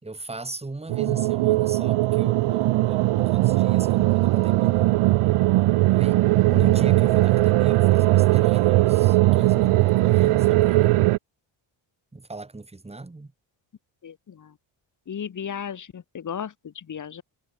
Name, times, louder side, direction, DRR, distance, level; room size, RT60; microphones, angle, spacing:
voice 1, 0.0-5.0 5.9-11.0 12.1-13.3, right 2 dB, 10° right, 3.1 m, -38 dB
sound 1, 0.9-11.2, right 18 dB, 80° right, 0.6 m, -19 dB
voice 2, 14.0-14.5 15.1-17.2, left 8 dB, 35° left, 1.6 m, -35 dB
wide cardioid pair, 175°, 50 cm